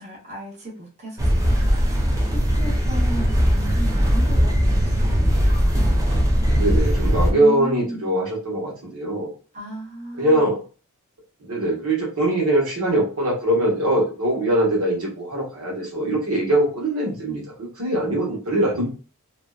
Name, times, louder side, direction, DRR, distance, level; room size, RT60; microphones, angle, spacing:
voice 1, 0.0-6.1 7.3-8.1 9.5-10.6, equal, 30° right, -4 dB, 0.9 m, -35 dB
sound 1, 1.2-7.3, equal, 15° right, 0.4 m, -19 dB
voice 2, 6.5-9.3 10.2-10.6 11.4-18.9, right 1 dB, 75° right, -2 dB, 1.1 m, -22 dB
2.6 x 2.2 x 2.2 m, 0.36 s
head